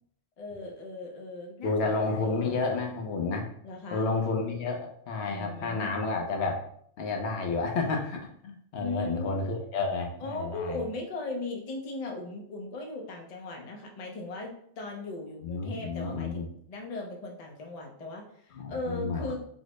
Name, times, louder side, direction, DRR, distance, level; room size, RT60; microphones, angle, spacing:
voice 1, 0.4-2.6 3.6-4.1 5.3-6.0 8.8-9.4 10.2-19.4, left 2 dB, 45° left, 1 dB, 0.5 m, -38 dB
voice 2, 1.6-3.5 3.9-6.6 7.0-10.8 15.4-16.5 18.6-19.4, left 3 dB, 65° left, 2 dB, 0.8 m, -31 dB
4.0 x 2.0 x 3.0 m, 0.66 s
omnidirectional pair, 1.3 m